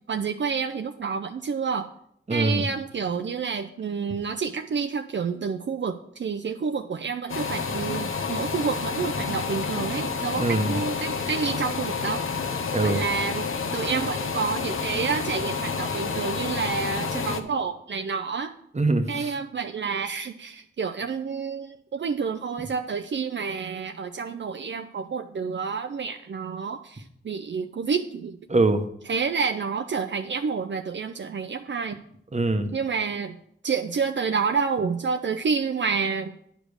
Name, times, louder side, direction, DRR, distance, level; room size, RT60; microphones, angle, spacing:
voice 1, 0.0-1.9 2.3-12.3 12.8-18.5 19.1-28.4 29.1-32.0 32.7-33.4 33.6-36.3, right 5 dB, 65° right, 6 dB, 0.5 m, -29 dB
voice 2, 2.3-2.6 10.4-10.8 12.7-13.0 18.7-19.3 28.5-28.8 32.3-32.7, right 2 dB, 35° right, 7 dB, 0.9 m, -23 dB
sound 1, 7.3-17.4, left 5 dB, 85° left, 0.8 m, -29 dB
10.0 x 5.1 x 6.4 m, 0.71 s
wide cardioid pair, 90°, 21 cm